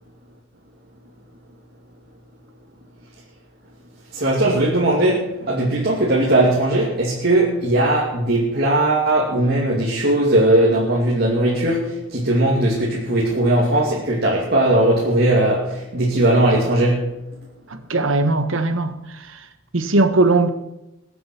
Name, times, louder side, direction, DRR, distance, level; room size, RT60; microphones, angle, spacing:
voice 1, 4.1-17.1, right 1 dB, 50° right, -4 dB, 2.6 m, -18 dB
voice 2, 17.7-19.4 19.7-20.5, right 2 dB, 75° right, 9 dB, 1.5 m, -19 dB
21.5 x 7.7 x 6.0 m, 0.92 s
head